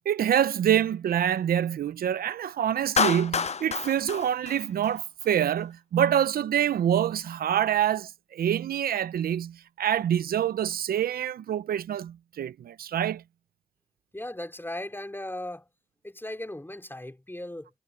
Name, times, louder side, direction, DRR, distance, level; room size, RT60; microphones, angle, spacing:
voice 1, 0.0-13.2, right 10 dB, 80° right, 0.8 m, -26 dB
Clapping, 3.0-5.3, left 6 dB, 45° left, 0.7 m, -28 dB
voice 2, 14.1-15.7 16.0-17.7, left 1 dB, 15° left, 4.8 m, -37 dB
supercardioid pair, 45°, 15 cm